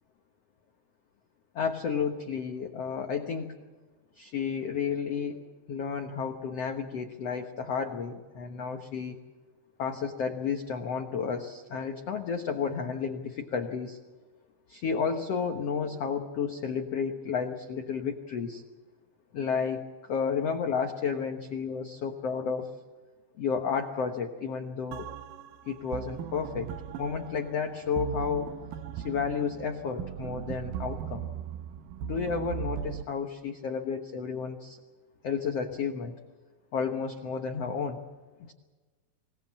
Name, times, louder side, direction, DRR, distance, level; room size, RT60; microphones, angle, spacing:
voice 1, 1.5-3.5 4.2-5.4 5.7-9.2 9.8-14.0 14.7-18.6 19.3-22.8 23.4-25.1 25.7-26.7 27.0-28.5 28.9-31.3 32.0-34.8 35.2-36.1 36.7-38.0 38.4-38.5, left 6 dB, 80° left, 4 dB, 1.4 m, -32 dB
sound 1, 24.9-33.0, right 11 dB, 75° right, 2.2 m, -38 dB
25.5 x 18.5 x 7.4 m, 1.3 s
omnidirectional pair, 4.7 m